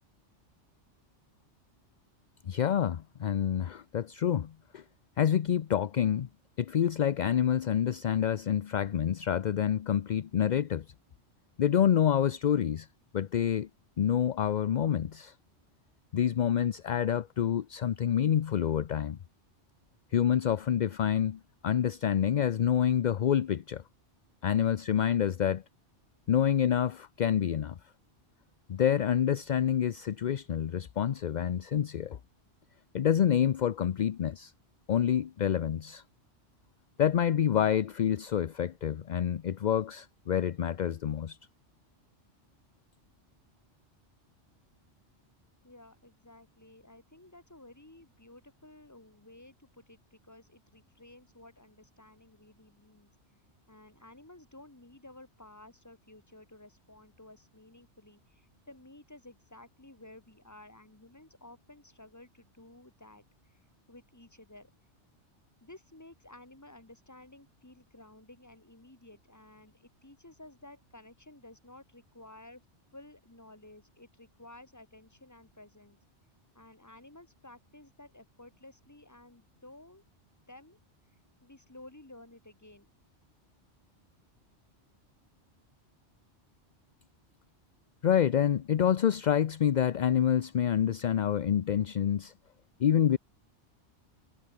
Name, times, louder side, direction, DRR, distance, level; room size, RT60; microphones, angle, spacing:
voice 1, 2.5-4.8 5.2-6.3 6.6-10.8 11.6-12.9 13.1-13.7 14.0-15.3 16.1-19.2 20.1-23.8 24.4-25.6 26.3-27.8 28.7-32.2 32.9-34.5 34.9-36.0 37.0-41.4 88.0-92.3 92.8-93.2, left 9 dB, 50° left, 0.6 m, -27 dB
voice 2, 45.6-53.1 53.7-64.7 65.6-72.6 72.9-76.0 76.5-80.0 80.5-80.8 81.4-82.9, left 2 dB, 15° left, 1.9 m, -54 dB
omnidirectional pair, 1.2 m